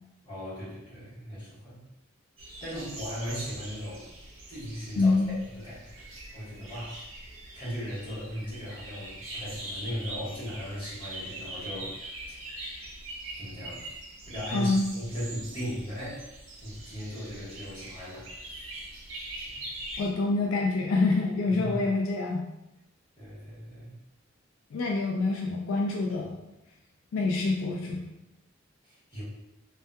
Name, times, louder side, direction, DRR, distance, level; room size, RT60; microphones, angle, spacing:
voice 1, 0.2-1.8 2.6-4.1 4.5-5.4 5.6-6.1 6.3-7.0 7.5-12.4 13.4-13.8 14.3-16.3 16.6-18.7 19.4-19.6 21.5-21.8 23.2-24.0 28.8-29.2, equal, 25° left, -9 dB, 1.2 m, -38 dB
sound 1, 2.4-20.1, right 1 dB, 75° right, 0.5 m, -42 dB
voice 2, 5.0-5.3 14.5-14.8 20.0-22.4 24.7-26.4 27.1-28.0, left 3 dB, 80° left, 0 dB, 0.3 m, -26 dB
2.6 x 2.2 x 2.2 m, 0.91 s
head